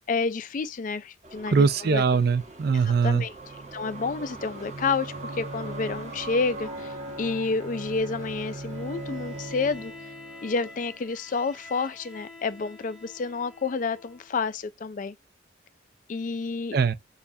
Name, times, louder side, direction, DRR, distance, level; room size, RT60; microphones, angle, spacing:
voice 1, 0.1-2.0 2.7-3.3 3.7-9.9 10.4-15.1 16.1-16.8, left 4 dB, 40° left, 0.4 m, -29 dB
sound 1, 1.2-10.0, right 3 dB, 35° right, 1.0 m, -44 dB
voice 2, 1.5-3.2 16.7-16.9, right 5 dB, 55° right, 0.4 m, -22 dB
Bowed string instrument, 3.4-11.2, right 2 dB, 90° right, 1.3 m, -40 dB
Bowed string instrument 2, 8.7-14.3, left 2 dB, 5° right, 0.9 m, -47 dB
6.6 x 2.4 x 2.7 m
head